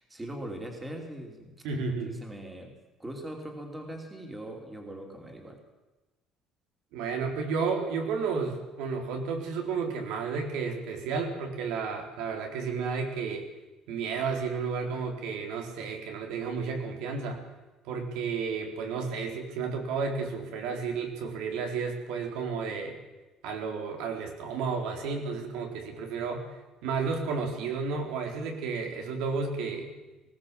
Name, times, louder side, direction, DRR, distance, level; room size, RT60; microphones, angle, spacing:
voice 1, 0.0-1.6 2.0-2.7 3.0-5.6, right 1 dB, 10° right, 2 dB, 2.8 m, -41 dB
voice 2, 1.6-2.2 6.9-13.5 13.9-17.4 17.8-23.0 23.4-29.9, right 5 dB, 80° right, 3 dB, 4.1 m, -32 dB
20.0 x 17.5 x 7.5 m, 1.1 s
cardioid pair, 175°, 0 cm